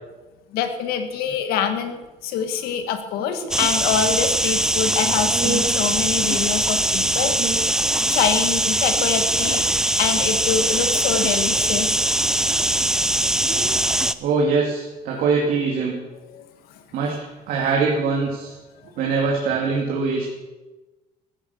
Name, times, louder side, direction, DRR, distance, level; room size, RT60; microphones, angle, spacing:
voice 1, 0.5-7.5 8.1-9.6 10.0-12.0 16.3-16.4, left 7 dB, 90° left, 8 dB, 1.8 m, -25 dB
sound 1, 3.5-14.1, right 1 dB, 5° right, 0.4 m, -21 dB
voice 2, 5.3-5.8 7.2-7.7 8.9-9.0 13.5-13.8 14.2-16.0 16.9-17.2 17.5-18.6 18.9-20.3, right 4 dB, 70° right, -1 dB, 2.6 m, -23 dB
15.5 x 10.5 x 7.0 m, 1.2 s
cardioid pair, 155°, 15 cm